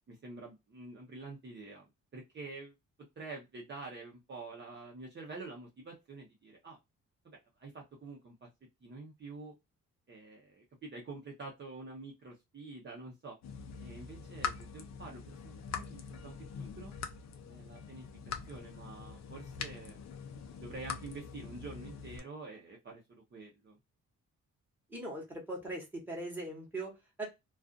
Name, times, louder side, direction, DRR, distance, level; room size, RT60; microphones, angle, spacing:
voice 1, 0.1-1.8 2.1-2.7 3.2-6.8 7.2-8.5 8.8-9.5 10.1-13.4 13.8-17.0 17.5-18.0 18.5-20.0 20.6-23.8, right 3 dB, 35° right, -1 dB, 0.7 m, -47 dB
sound 1, 13.4-22.2, left 6 dB, 60° left, 0.5 m, -43 dB
voice 2, 24.9-27.2, right 1 dB, 5° right, -2 dB, 1.1 m, -40 dB
2.4 x 2.4 x 2.3 m, 0.21 s
wide cardioid pair, 175°, 30 cm